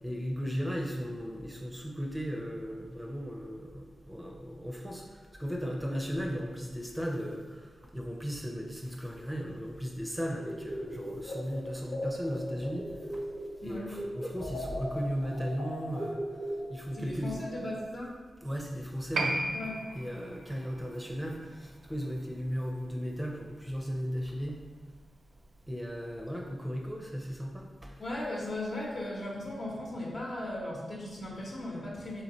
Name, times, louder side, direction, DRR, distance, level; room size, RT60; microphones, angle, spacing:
voice 1, 0.0-5.0 5.4-7.4 7.9-12.9 13.6-16.2 16.7-17.4 18.4-19.4 20.0-21.4 21.9-24.5 25.7-27.9, equal, 10° right, 0 dB, 0.6 m, -36 dB
sound 1, 10.4-13.6 13.9-17.0, equal, 80° left, 1.1 m, -38 dB
voice 2, 13.6-13.9 16.9-18.1 19.5-19.8 28.0-32.2, left 1 dB, 60° left, -4 dB, 1.2 m, -37 dB
Piano, 19.1-26.1 26.4-26.5, right 1 dB, 75° right, 0.4 m, -39 dB
3.3 x 3.1 x 3.9 m, 1.5 s
cardioid pair, 55°, 0 cm